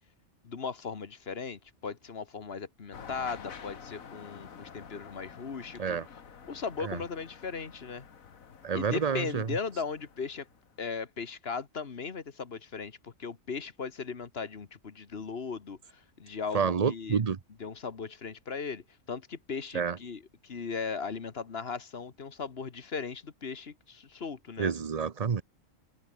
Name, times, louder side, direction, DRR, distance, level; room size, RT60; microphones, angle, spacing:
voice 1, 0.4-6.0 6.5-8.1 8.7-10.5 10.8-17.2 17.6-24.7, left 5 dB, 50° left, 1.6 m, -38 dB
sound 1, 2.9-10.8, left 6 dB, 90° left, 1.9 m, -49 dB
voice 2, 8.6-9.6 16.5-17.4 19.7-20.0 24.6-25.4, right 6 dB, 35° right, 0.8 m, -29 dB
omnidirectional pair, 1.4 m